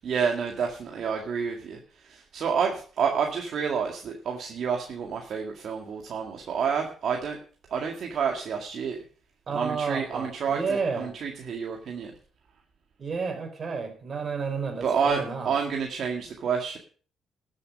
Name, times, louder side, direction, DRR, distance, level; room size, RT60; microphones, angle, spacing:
voice 1, 0.0-7.4 7.7-9.0 9.5-12.1 14.8-16.8, right 6 dB, 60° right, 1.9 m, -29 dB
voice 2, 9.5-11.1 13.0-15.5, right 5 dB, 45° right, 4.2 m, -31 dB
13.0 x 7.7 x 6.3 m
cardioid pair, 90°, 0 cm